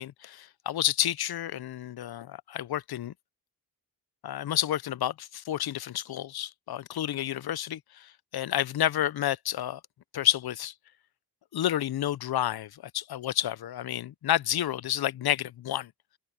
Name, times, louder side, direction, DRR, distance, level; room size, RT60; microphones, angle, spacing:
voice 1, 0.0-3.1 4.2-9.8 10.1-10.7 11.5-15.9, left 12 dB, 80° left, 0.5 m, -30 dB
open air
wide cardioid pair, 140°, 37 cm